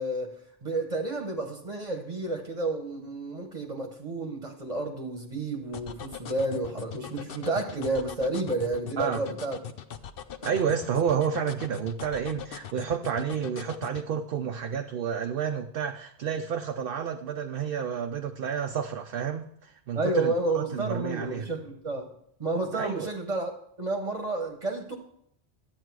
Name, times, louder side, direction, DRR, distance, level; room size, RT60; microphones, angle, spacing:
voice 1, 0.0-9.6 19.9-22.1 22.4-23.5 23.8-25.0, right 2 dB, 35° right, 3 dB, 1.2 m, -31 dB
sound 1, 5.7-14.1, left 8 dB, 65° left, 0.8 m, -40 dB
voice 2, 10.4-21.5 22.7-23.1, right 7 dB, 60° right, 5 dB, 0.8 m, -30 dB
11.5 x 8.8 x 4.7 m, 0.69 s
omnidirectional pair, 1.1 m